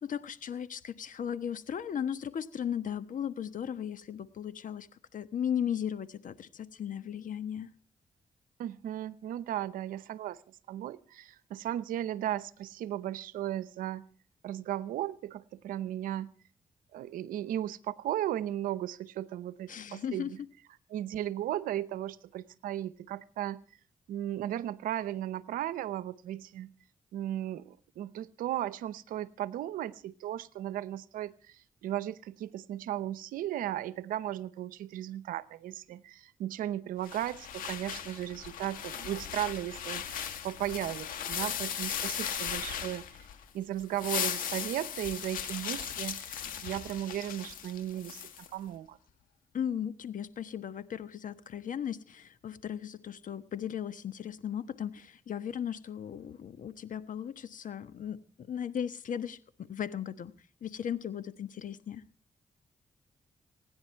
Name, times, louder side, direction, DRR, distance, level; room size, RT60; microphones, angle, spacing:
voice 1, 0.0-7.7 19.7-20.5 49.5-60.3 60.6-62.0, left 9 dB, 70° left, 1.3 m, -36 dB
voice 2, 8.6-14.0 14.4-16.3 16.9-20.4 20.9-23.6 24.1-26.7 27.1-43.1 43.5-48.2 48.5-49.0, right 12 dB, 90° right, 0.8 m, -36 dB
sound 1, 37.0-43.4 43.8-48.5, left 9 dB, 90° left, 1.9 m, -37 dB
26.5 x 10.5 x 4.5 m
supercardioid pair, 45°, 14 cm